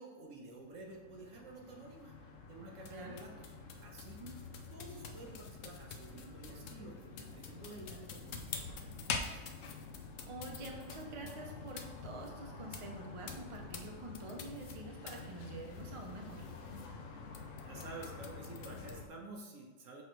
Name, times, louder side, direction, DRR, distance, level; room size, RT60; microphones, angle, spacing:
voice 1, 0.0-2.1 2.5-3.5 3.8-4.2 4.7-9.4 17.6-20.0, right 2 dB, 90° right, 0 dB, 1.4 m, -50 dB
sound 1, 0.6-19.1, left 5 dB, 90° left, 1.0 m, -46 dB
voice 2, 10.2-16.5, right 2 dB, 30° right, 1 dB, 0.7 m, -47 dB
7.0 x 3.2 x 4.5 m, 1.3 s
omnidirectional pair, 1.3 m